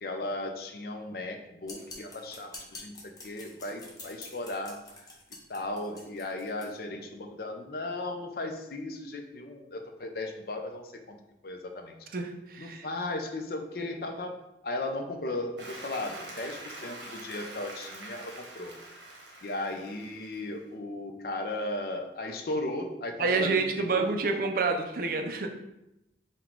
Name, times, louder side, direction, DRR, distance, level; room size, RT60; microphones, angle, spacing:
voice 1, 0.0-3.0 3.2-4.8 5.5-11.2 11.4-11.9 12.6-14.4 14.6-18.7 19.4-24.4, left 2 dB, 55° left, 4 dB, 0.5 m, -36 dB
sound 1, 1.6-6.7, left 2 dB, 20° left, 0.7 m, -47 dB
voice 2, 12.1-12.9 23.2-25.5, right 4 dB, 50° right, 5 dB, 0.4 m, -28 dB
Applause, 15.6-20.6, right 2 dB, 75° right, 1.0 m, -45 dB
4.0 x 2.3 x 4.4 m, 0.89 s
head